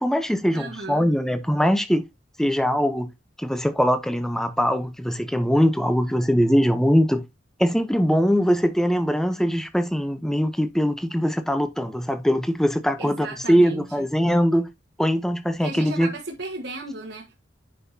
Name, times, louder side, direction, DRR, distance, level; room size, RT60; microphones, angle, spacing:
voice 1, 0.0-2.0 2.4-3.1 3.4-7.2 7.6-14.7 15.0-16.1, equal, 5° left, 0.8 m, -22 dB
voice 2, 0.5-1.1 13.0-14.1 15.6-17.4, right 2 dB, 70° right, 1.4 m, -35 dB
9.6 x 5.8 x 2.8 m
head